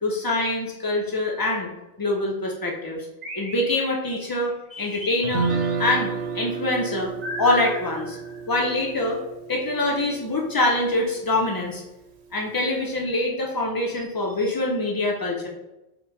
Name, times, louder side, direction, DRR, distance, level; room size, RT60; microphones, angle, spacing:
voice 1, 0.0-1.7 2.0-3.1 3.3-5.5 5.8-7.1 7.4-8.2 8.5-9.2 9.5-11.8 12.3-15.5, left 2 dB, 30° left, -1 dB, 0.4 m, -24 dB
sound 1, 3.2-4.3 5.0-6.1 7.2-8.7, equal, 45° right, 0.8 m, -38 dB
Guitar, 5.2-11.4, right 5 dB, 75° right, 0.8 m, -31 dB
4.4 x 2.2 x 3.9 m, 0.94 s
omnidirectional pair, 1.1 m